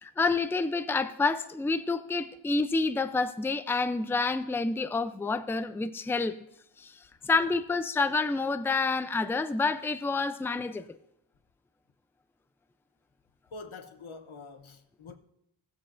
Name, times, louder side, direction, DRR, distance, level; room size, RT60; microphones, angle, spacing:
voice 1, 0.0-6.4 6.8-10.9, left 3 dB, 5° left, 0.4 m, -28 dB
voice 2, 13.5-15.2, left 3 dB, 90° left, 0.9 m, -45 dB
17.5 x 7.6 x 2.5 m
wide cardioid pair, 55°, 47 cm